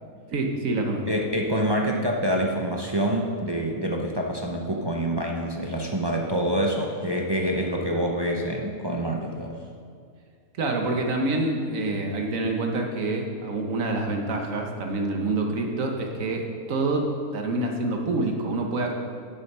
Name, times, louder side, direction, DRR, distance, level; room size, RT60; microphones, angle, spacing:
voice 1, 0.3-1.0 10.6-18.9, right 2 dB, 60° right, 2 dB, 1.5 m, -27 dB
voice 2, 1.1-9.6, right 1 dB, 30° right, 0 dB, 0.4 m, -26 dB
8.9 x 7.0 x 5.4 m, 2.3 s
omnidirectional pair, 1.6 m